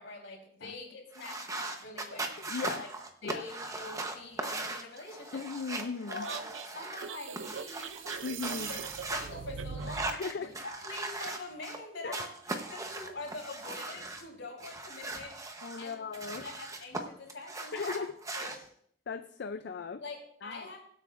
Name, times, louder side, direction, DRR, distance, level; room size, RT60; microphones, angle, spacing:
voice 1, 0.0-2.2 2.5-2.9 3.2-5.4 6.1-6.4 6.7-8.0 8.5-8.8 9.1-15.4 15.8-16.0 16.3-18.1 18.4-18.7 20.0-20.8, left 3 dB, 80° left, 0 dB, 3.9 m, -45 dB
sound 1, 1.1-9.3 9.8-11.8 12.1-14.2 14.6-17.0 17.3-18.6, right 2 dB, 15° right, 1.0 m, -39 dB
voice 2, 2.5-2.8 3.2-3.4 5.3-6.3 8.2-8.7 10.1-10.5 12.0-12.1 15.6-16.4 17.7-18.1 19.1-20.0 20.4-20.7, left 5 dB, 60° left, 9 dB, 0.4 m, -37 dB
sound 2, 6.2-10.2, right 6 dB, 90° right, 0.6 m, -41 dB
22.0 x 8.4 x 2.6 m, 0.65 s
head